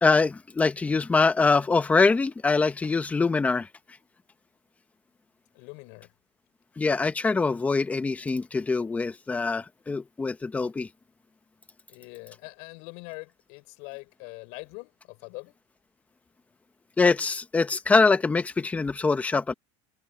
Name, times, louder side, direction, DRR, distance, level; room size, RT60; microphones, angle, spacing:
voice 1, 0.0-3.7 6.8-10.9 17.0-19.5, left 4 dB, 10° left, 1.0 m, -24 dB
voice 2, 5.5-6.1 11.9-15.5, left 30 dB, 60° left, 6.9 m, -43 dB
cardioid pair, 160°, 14 cm